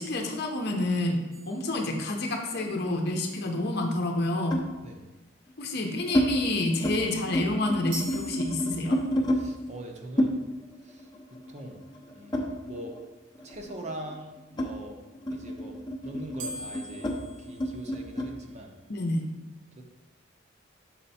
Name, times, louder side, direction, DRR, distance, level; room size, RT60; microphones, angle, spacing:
voice 1, 0.0-4.6 5.6-9.0 18.9-19.2, left 2 dB, 60° left, 2 dB, 0.7 m, -29 dB
sound 1, 1.3-2.6 7.9-9.4 16.4-18.5, right 1 dB, 75° right, 0.8 m, -44 dB
sound 2, 1.6-3.2 4.5-4.8 5.5-6.3 6.7-7.0 7.3-9.4 10.2-13.1 13.4-18.3, equal, 20° left, 0.7 m, -31 dB
voice 2, 9.3-10.4 10.8-11.8 12.1-13.0 13.4-15.0 15.3-15.8 16.0-18.7 19.7-19.8, right 1 dB, 35° right, 2 dB, 0.7 m, -42 dB
5.7 x 4.4 x 4.2 m, 1.2 s
head